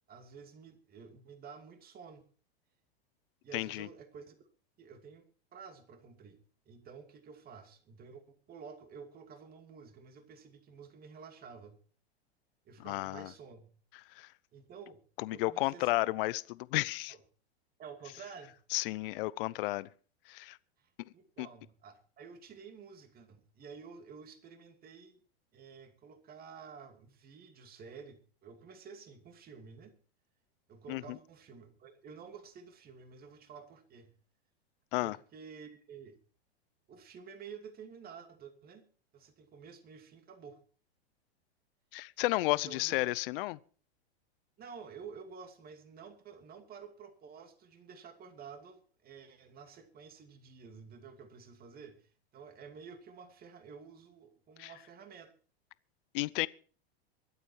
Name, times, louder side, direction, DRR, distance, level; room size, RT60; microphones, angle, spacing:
voice 1, 0.1-2.2 3.4-4.4 4.8-5.3 5.5-6.4 6.7-11.8 12.6-13.7 14.5-15.0 15.3-15.9 17.1-17.2 17.8-18.6 20.8-25.2 25.5-29.9 30.7-34.1 35.0-36.2 36.9-38.8 39.1-40.6 42.5-43.0 44.6-55.3, right 6 dB, 30° right, 2.6 m, -51 dB
voice 2, 3.5-3.9 12.8-13.3 14.2-14.3 15.2-17.1 18.7-19.9 20.3-20.6 21.4-21.5 30.9-31.0 34.9-35.2 41.9-43.6 54.6-54.7 56.1-56.5, left 20 dB, 55° left, 0.7 m, -32 dB
23.5 x 8.1 x 4.6 m
hypercardioid pair, 120°, 32 cm